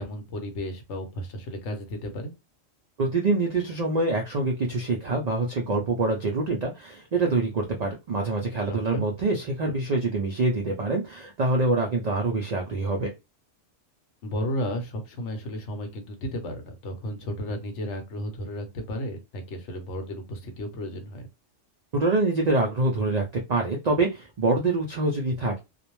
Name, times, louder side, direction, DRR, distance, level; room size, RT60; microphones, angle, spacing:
voice 1, 0.0-2.3 8.7-9.0 14.2-21.2, equal, 70° left, 5 dB, 1.0 m, -33 dB
voice 2, 3.0-13.1 21.9-25.6, right 2 dB, 70° right, 1 dB, 0.3 m, -25 dB
2.4 x 2.0 x 3.0 m, 0.24 s
omnidirectional pair, 1.3 m